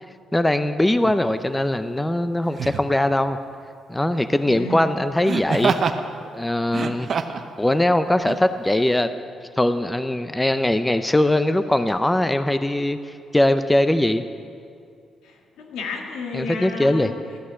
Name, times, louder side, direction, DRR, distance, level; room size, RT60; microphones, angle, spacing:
voice 1, 0.3-3.4 3.9-5.7 6.2-7.1 7.6-9.1 9.6-13.0 13.3-14.2 16.3-17.1, left 1 dB, 10° left, 10 dB, 0.5 m, -21 dB
Laughter, 1.0-1.2 2.5-2.9 5.2-6.0 6.6-7.5 8.2-8.4, right 6 dB, 55° right, 0.8 m, -25 dB
voice 2, 4.4-4.8 15.2-17.4, left 3 dB, 90° left, 2 dB, 1.7 m, -32 dB
14.0 x 6.3 x 9.4 m, 2.4 s
cardioid pair, 90°, 0 cm